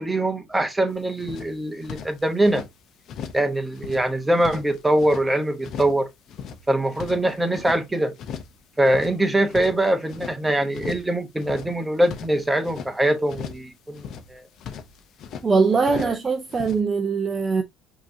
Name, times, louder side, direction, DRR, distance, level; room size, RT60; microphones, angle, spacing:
voice 1, 0.0-2.6 3.3-6.1 6.7-8.1 8.8-14.4 15.8-16.1, right 1 dB, 10° right, 0.9 m, -23 dB
sound 1, 0.9-1.0 1.2-2.7 3.1-3.5 3.7-5.3 5.6-6.0 6.3-7.8 8.2-8.6 8.8-10.4 10.7-11.1 11.4-12.9 13.3-13.7 13.9-15.5 15.8-16.2 16.5-16.8, left 7 dB, 55° left, 0.7 m, -38 dB
voice 2, 15.4-17.6, right 4 dB, 25° right, 0.6 m, -21 dB
5.1 x 2.9 x 2.6 m
cardioid pair, 120°, 0 cm